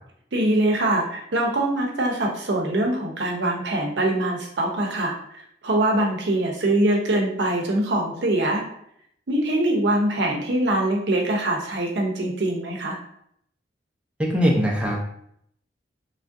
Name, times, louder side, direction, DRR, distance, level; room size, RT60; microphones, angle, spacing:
voice 1, 0.3-5.2 5.6-8.6 9.3-13.0, right 1 dB, 75° right, 0 dB, 0.6 m, -23 dB
voice 2, 14.2-15.0, equal, 5° right, -3 dB, 0.5 m, -21 dB
3.2 x 2.4 x 2.5 m, 0.70 s
head